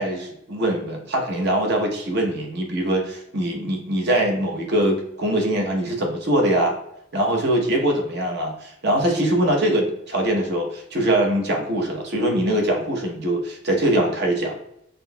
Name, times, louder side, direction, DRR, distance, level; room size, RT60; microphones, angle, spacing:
voice 1, 0.0-6.8 7.1-14.6, right 1 dB, 60° right, 1 dB, 0.9 m, -22 dB
6.0 x 2.7 x 2.2 m, 0.77 s
head